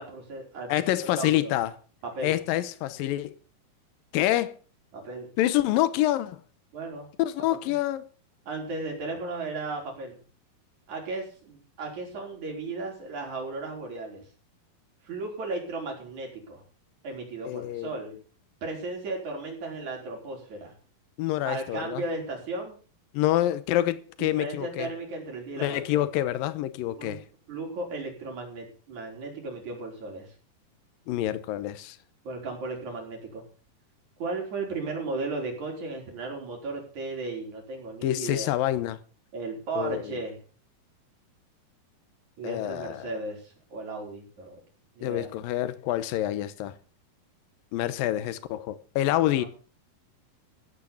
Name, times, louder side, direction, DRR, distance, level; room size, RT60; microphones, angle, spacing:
voice 1, 0.0-0.8 1.2-1.5 2.0-2.3 4.9-5.3 6.7-7.1 7.7-7.8 8.5-10.2 10.9-14.2 15.0-16.6 17.0-18.1 18.6-20.7 21.4-22.8 24.2-26.0 27.0-27.2 27.5-30.3 32.2-33.4 34.2-38.5 39.3-40.4 42.4-44.6 45.0-45.3 49.3-49.5, right 3 dB, 55° right, 6.1 m, -35 dB
voice 2, 0.7-1.7 2.2-3.3 4.1-4.6 5.4-6.4 7.2-8.1 17.4-17.9 21.2-22.0 23.1-24.9 25.6-27.2 31.1-32.0 38.0-39.0 39.8-40.0 42.4-43.1 45.0-46.7 47.7-49.5, left 14 dB, 85° left, 2.6 m, -27 dB
16.0 x 9.2 x 7.1 m
omnidirectional pair, 4.1 m